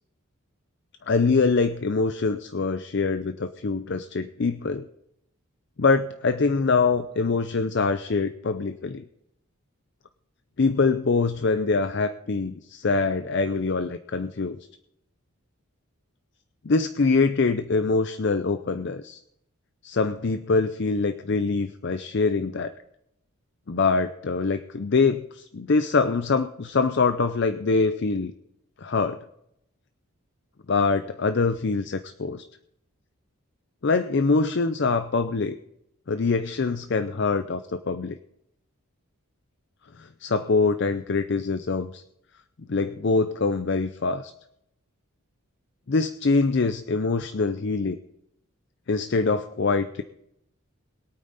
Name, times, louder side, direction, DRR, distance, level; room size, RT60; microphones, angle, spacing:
voice 1, 1.1-4.9 5.8-9.0 10.6-14.6 16.6-19.2 19.8-22.7 23.7-28.3 28.8-29.2 30.7-32.4 33.8-35.6 36.1-38.2 40.0-42.0 42.7-44.3 45.9-48.0 48.9-50.0, left 4 dB, 50° left, 10 dB, 0.5 m, -24 dB
22.0 x 8.9 x 4.1 m, 0.78 s
head